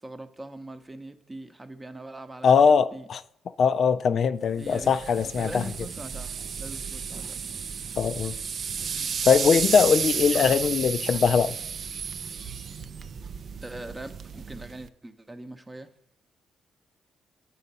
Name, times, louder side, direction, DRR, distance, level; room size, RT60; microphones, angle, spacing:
voice 1, 0.0-3.1 4.5-5.0 5.2-6.3 6.6-7.4 13.6-15.9, right 2 dB, 15° right, 0.7 m, -41 dB
voice 2, 2.4-3.2 3.6-5.7 8.0-8.3 9.3-11.5, left 6 dB, 55° left, 0.3 m, -21 dB
sound 1, 4.6-14.9, right 6 dB, 55° right, 0.4 m, -33 dB
9.2 x 4.0 x 5.4 m
cardioid pair, 90°, 0 cm